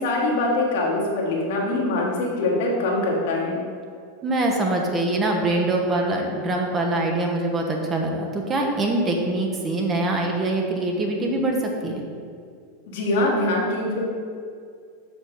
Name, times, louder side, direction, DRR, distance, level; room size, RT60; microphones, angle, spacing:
voice 1, 0.0-3.6 12.9-14.0, left 2 dB, 55° left, -3 dB, 1.6 m, -23 dB
voice 2, 4.2-12.0, right 2 dB, 25° right, 1 dB, 0.9 m, -24 dB
6.6 x 5.1 x 3.7 m, 2.2 s
figure-of-eight pair, 85°, 0 cm